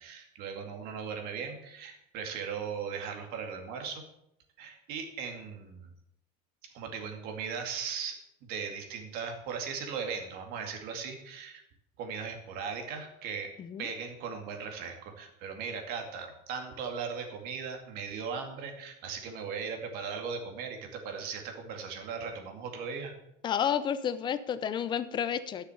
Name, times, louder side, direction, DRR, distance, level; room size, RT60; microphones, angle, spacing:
voice 1, 0.0-4.0 4.6-5.9 6.6-11.6 12.0-13.5 13.8-23.1, right 6 dB, 55° right, 4 dB, 2.3 m, -38 dB
voice 2, 23.4-25.6, left 8 dB, 25° left, 13 dB, 0.6 m, -31 dB
11.5 x 6.7 x 7.1 m, 0.80 s
cardioid pair, 160°, 18 cm